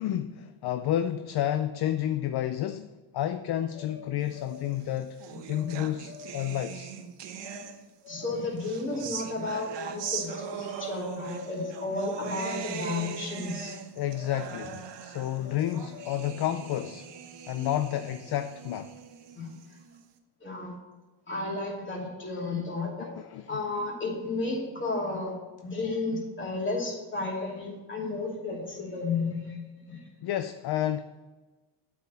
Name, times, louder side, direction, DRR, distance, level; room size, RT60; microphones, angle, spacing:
voice 1, 0.0-2.9 3.1-5.2 5.5-6.9 14.0-17.1 17.5-18.9 23.0-23.6 30.2-31.0, left 11 dB, 60° left, 0.5 m, -30 dB
sound 1, 3.7-4.8 5.5-5.8 6.0-6.7 7.4-7.7 8.0-8.6 9.4-9.7 10.0-10.6 11.4-11.7 12.0-12.6 13.5-13.8 14.0-14.9 15.4-16.4, left 6 dB, 80° left, 1.0 m, -47 dB
sound 2, 4.7-8.1 8.6-20.0, right 7 dB, 65° right, 0.9 m, -40 dB
voice 2, 5.3-5.8 8.1-13.7 19.4-19.5 20.4-20.8 21.3-23.1 23.5-25.3 25.6-29.6 29.9-30.0, left 3 dB, 25° left, 2.7 m, -33 dB
8.0 x 4.8 x 6.9 m
cardioid pair, 110°, 45 cm